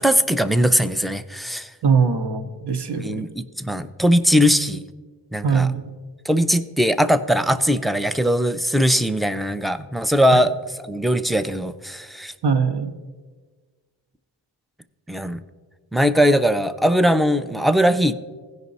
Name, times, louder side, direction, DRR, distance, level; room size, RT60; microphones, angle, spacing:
voice 1, 0.0-1.7 3.0-4.8 5.3-5.7 6.2-10.5 10.9-12.3 15.1-15.4 15.9-18.1, equal, ahead, 11 dB, 0.5 m, -20 dB
voice 2, 1.8-3.2 5.4-5.9 12.4-12.9, right 5 dB, 55° right, 8 dB, 1.0 m, -21 dB
16.0 x 5.3 x 4.1 m, 1.4 s
cardioid pair, 45°, 49 cm